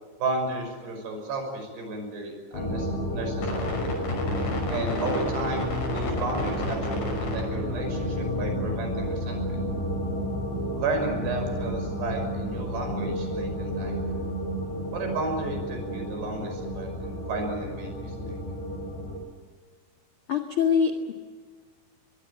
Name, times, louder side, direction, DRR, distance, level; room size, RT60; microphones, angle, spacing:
voice 1, 0.2-3.8 4.7-9.6 10.7-14.0 14.9-18.4, right 2 dB, 65° right, 4 dB, 7.9 m, -33 dB
sound 1, 2.5-19.2, equal, 80° left, 8.3 m, -30 dB
voice 2, 20.3-21.1, left 6 dB, 50° left, 7 dB, 1.6 m, -24 dB
24.0 x 21.5 x 9.0 m, 1.5 s
omnidirectional pair, 5.2 m